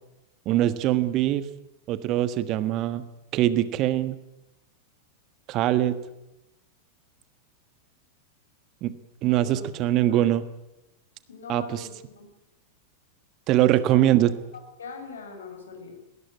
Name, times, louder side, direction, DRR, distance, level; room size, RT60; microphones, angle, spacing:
voice 1, 0.4-1.5 1.9-3.0 3.3-4.2 5.5-6.0 8.8-8.9 9.2-10.4 11.5-11.8 13.5-14.3, right 13 dB, 35° right, 14 dB, 1.4 m, -22 dB
voice 2, 9.3-9.7 10.1-10.3 11.3-12.3 13.6-14.0 14.8-16.0, left 4 dB, 65° left, 5 dB, 6.4 m, -41 dB
19.5 x 18.5 x 9.7 m, 0.95 s
figure-of-eight pair, 90°, 0 cm